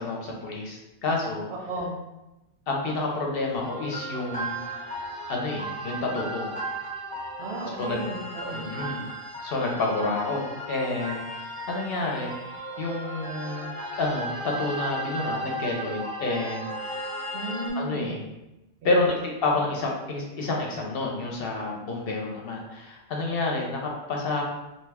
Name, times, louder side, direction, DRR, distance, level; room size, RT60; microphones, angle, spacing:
voice 1, 0.0-1.5 2.7-4.9 5.3-6.5 7.8-8.0 8.5-9.1 9.4-16.7 17.7-18.2 18.8-24.4, left 2 dB, 65° left, -1 dB, 0.8 m, -29 dB
voice 2, 1.5-2.0 7.4-8.7 17.3-18.2 18.8-19.1, right 2 dB, 70° right, -2 dB, 1.0 m, -34 dB
sound 1, 3.6-17.7, right 1 dB, 10° left, 0.6 m, -35 dB
2.6 x 2.2 x 3.3 m, 0.97 s
omnidirectional pair, 1.1 m